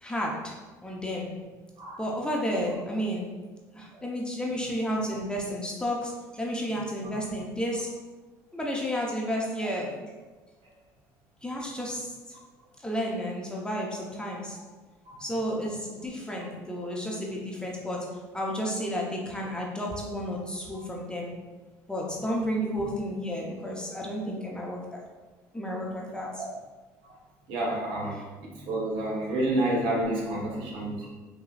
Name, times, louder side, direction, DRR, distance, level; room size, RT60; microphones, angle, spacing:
voice 1, 0.0-0.5 0.8-1.3 2.0-3.3 3.7-7.9 8.5-10.1 11.4-12.4 12.8-14.6 15.2-18.0 18.3-21.3 21.9-25.0 25.5-26.4 28.0-28.3 30.3-30.4, equal, 10° left, -3 dB, 0.7 m, -32 dB
voice 2, 27.5-28.2 28.7-31.1, right 1 dB, 65° right, -4 dB, 1.1 m, -28 dB
4.8 x 2.2 x 2.3 m, 1.3 s
supercardioid pair, 75°, 9 cm